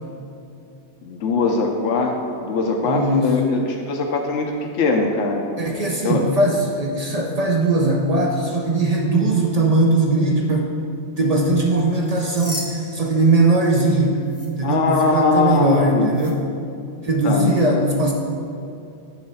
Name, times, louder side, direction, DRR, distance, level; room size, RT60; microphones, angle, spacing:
voice 1, 1.0-5.4 6.0-6.2 14.6-16.1 17.2-17.5, left 3 dB, 85° left, 1 dB, 0.9 m, -21 dB
voice 2, 2.8-3.3 5.6-10.7 11.2-14.2 14.6-16.4 17.0-18.1, right 2 dB, 50° right, -1 dB, 0.4 m, -19 dB
sound 1, 11.9-13.9 14.2-14.5 16.1-16.3, left 1 dB, 15° left, 0.6 m, -35 dB
7.6 x 3.2 x 5.4 m, 2.6 s
omnidirectional pair, 1.2 m